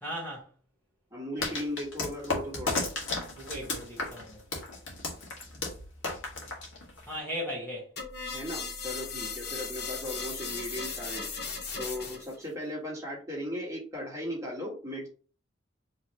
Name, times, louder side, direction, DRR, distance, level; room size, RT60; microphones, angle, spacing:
voice 1, 0.0-0.5 1.4-1.5 3.4-4.4 7.0-7.9, equal, 10° left, 1.3 m, -37 dB
voice 2, 1.1-2.8 8.3-11.3 11.8-15.1, left 1 dB, 15° right, 1.7 m, -37 dB
sound 1, 1.4-7.2, left 3 dB, 70° left, 1.5 m, -34 dB
sound 2, 8.0-12.4, left 5 dB, 55° left, 1.0 m, -37 dB
4.7 x 3.3 x 2.9 m
head